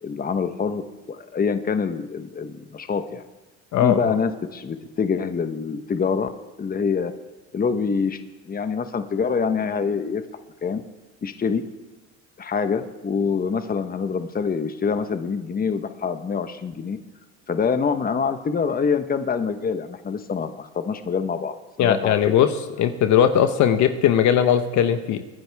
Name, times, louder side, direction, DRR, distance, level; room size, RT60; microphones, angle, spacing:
voice 1, 0.0-3.2 3.8-6.3 6.6-7.1 7.5-8.2 8.5-10.2 10.6-10.8 11.2-11.6 12.4-17.0 17.5-22.2, left 5 dB, 25° left, 9 dB, 1.1 m, -25 dB
voice 2, 3.7-4.2 21.8-22.5 22.8-25.2, left 9 dB, 60° left, 9 dB, 1.1 m, -19 dB
23.0 x 10.5 x 3.5 m, 1.1 s
supercardioid pair, 80°, 32 cm